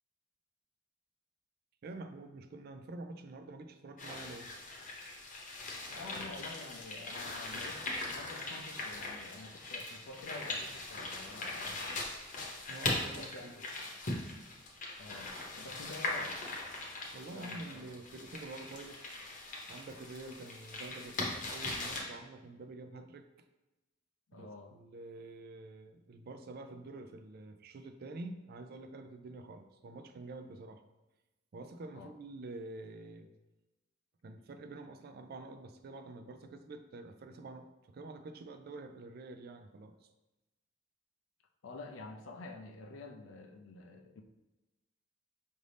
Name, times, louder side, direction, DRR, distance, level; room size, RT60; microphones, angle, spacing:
voice 1, 1.8-4.5 12.7-13.5 17.1-19.1 19.7-23.3 24.3-30.8 31.5-33.3 34.2-40.1, right 2 dB, 50° right, 8 dB, 0.4 m, -47 dB
sound 1, 4.0-22.0, left 2 dB, 40° left, 0.8 m, -40 dB
voice 2, 5.9-12.1 13.2-13.9 15.0-16.4 17.3-17.9 24.3-24.8 31.9-32.1 41.6-44.2, left 3 dB, 85° left, 4 dB, 0.5 m, -49 dB
5.0 x 2.7 x 3.3 m, 1.0 s
head